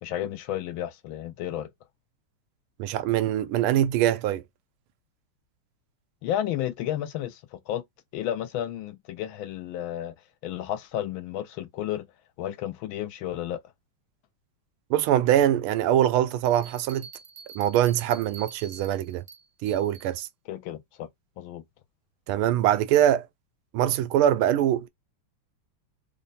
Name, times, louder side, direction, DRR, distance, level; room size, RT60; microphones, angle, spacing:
voice 1, 0.0-1.7 6.2-7.8 8.1-10.1 10.4-12.1 12.4-13.6 20.5-21.1 21.4-21.6, left 11 dB, 75° left, 1.4 m, -32 dB
voice 2, 2.8-4.4 14.9-17.1 17.5-19.2 19.6-20.3 22.3-23.3 23.7-24.9, right 11 dB, 85° right, 1.4 m, -23 dB
sound 1, 16.4-20.1, right 6 dB, 60° right, 0.9 m, -47 dB
3.7 x 2.1 x 4.0 m
omnidirectional pair, 2.3 m